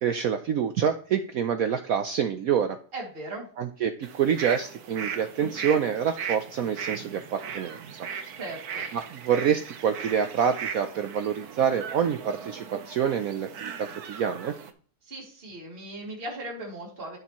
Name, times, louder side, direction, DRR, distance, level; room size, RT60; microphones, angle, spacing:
voice 1, 0.0-2.8 3.6-8.1 8.9-14.5, right 8 dB, 85° right, 8 dB, 0.7 m, -27 dB
voice 2, 2.9-3.5 8.4-8.8 15.0-17.2, right 2 dB, 25° right, -1 dB, 2.6 m, -38 dB
sound 1, 4.0-14.7, right 7 dB, 60° right, 1.2 m, -38 dB
10.5 x 6.8 x 3.0 m, 0.44 s
omnidirectional pair, 2.3 m